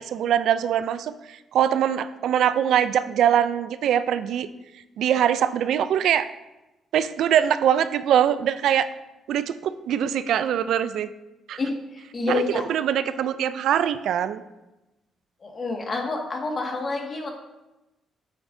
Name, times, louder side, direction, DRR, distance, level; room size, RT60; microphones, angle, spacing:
voice 1, 0.0-4.5 5.0-6.3 6.9-8.9 9.3-11.1 11.5-11.6 12.3-12.4 12.7-14.4, right 9 dB, 75° right, 13 dB, 0.4 m, -22 dB
voice 2, 11.6-12.6 15.4-17.3, left 3 dB, 40° left, 1 dB, 1.8 m, -28 dB
9.2 x 9.0 x 2.7 m, 1.0 s
cardioid pair, 90°, 0 cm